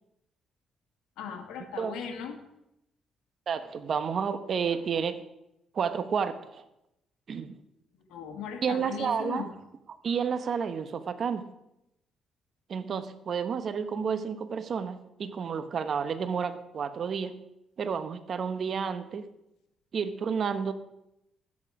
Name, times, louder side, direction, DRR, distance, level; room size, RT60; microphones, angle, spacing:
voice 1, 1.2-2.4 8.1-9.5, left 6 dB, 90° left, 5 dB, 2.0 m, -38 dB
voice 2, 3.5-5.2 5.7-6.6 7.3-7.6 8.6-9.4 10.0-11.5 12.7-17.4 17.8-19.2 19.9-20.7, right 6 dB, 55° right, 11 dB, 1.1 m, -31 dB
13.5 x 9.6 x 4.8 m, 0.85 s
cardioid pair, 90°, 0 cm